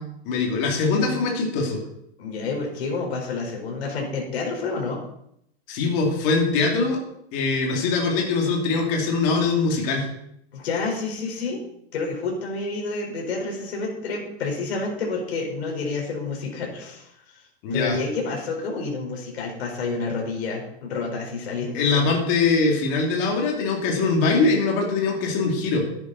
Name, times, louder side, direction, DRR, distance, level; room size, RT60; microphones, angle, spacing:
voice 1, 0.0-1.8 5.7-7.0 7.3-10.1 17.6-18.0 21.7-25.8, left 4 dB, 30° left, 0 dB, 2.7 m, -22 dB
voice 2, 2.2-5.0 10.5-11.7 11.9-17.4 17.7-21.9, left 3 dB, 70° left, 1 dB, 4.5 m, -29 dB
12.5 x 9.8 x 4.1 m, 0.75 s
supercardioid pair, 165°, 33 cm